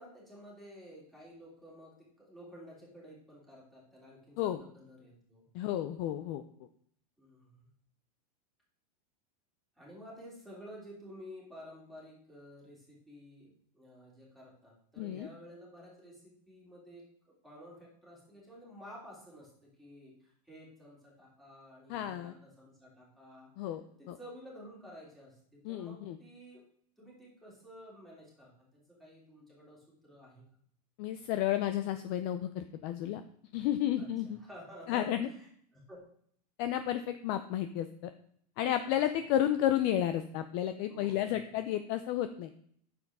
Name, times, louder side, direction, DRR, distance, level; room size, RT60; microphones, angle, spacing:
voice 1, 0.0-5.5 7.2-7.7 9.8-26.6 27.0-30.4 34.0-36.0 38.8-38.9 40.9-41.5, equal, ahead, -5 dB, 2.9 m, -52 dB
voice 2, 5.5-6.4 15.0-15.3 21.9-22.3 23.6-24.2 25.6-26.2 31.0-33.2 33.5-34.4 34.9-35.3 36.6-37.9 38.6-42.5, left 11 dB, 35° left, 10 dB, 0.4 m, -32 dB
9.5 x 7.1 x 3.6 m, 0.63 s
supercardioid pair, 160°, 20 cm